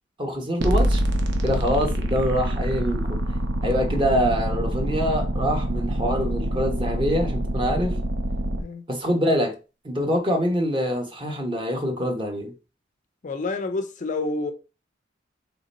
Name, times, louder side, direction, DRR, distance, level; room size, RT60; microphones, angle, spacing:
voice 1, 0.2-1.0 1.4-3.2 3.6-7.9 8.9-9.5 9.8-12.5, equal, 25° right, 1.0 m, -25 dB
sound 1, 0.6-8.6, right 1 dB, 60° right, 0.8 m, -25 dB
voice 2, 13.2-14.5, left 3 dB, 40° left, 0.5 m, -28 dB
3.8 x 3.3 x 4.1 m
head